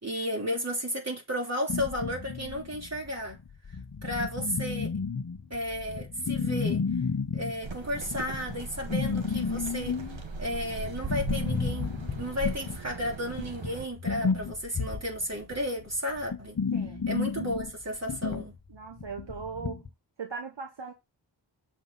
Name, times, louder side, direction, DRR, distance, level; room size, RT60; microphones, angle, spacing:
voice 1, 0.0-3.4 4.0-4.9 5.5-6.8 7.3-10.0 10.4-16.6 17.1-18.5, equal, 35° right, 3.5 m, -33 dB
sound 1, 1.7-19.9, left 5 dB, 45° left, 0.9 m, -33 dB
sound 2, 7.6-13.9, right 3 dB, 90° right, 1.2 m, -39 dB
voice 2, 16.7-17.0 18.7-19.9 20.2-20.9, right 5 dB, 70° right, 1.2 m, -39 dB
7.2 x 4.8 x 3.9 m
wide cardioid pair, 60°, 45 cm